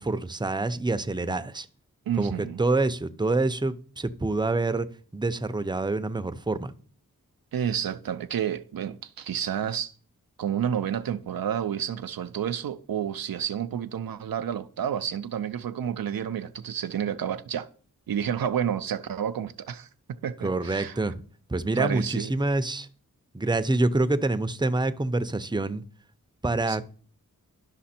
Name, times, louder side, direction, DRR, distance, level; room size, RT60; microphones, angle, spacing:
voice 1, 0.0-1.7 2.2-4.9 5.1-6.7 20.4-21.2 21.5-22.9 23.3-25.8 26.4-26.9, right 2 dB, 15° right, 0.7 m, -26 dB
voice 2, 2.1-2.6 7.5-9.9 10.4-17.7 18.1-21.0 21.8-22.3 26.7-26.8, right 9 dB, 80° right, 0.6 m, -30 dB
11.5 x 5.8 x 4.3 m
cardioid pair, 45°, 35 cm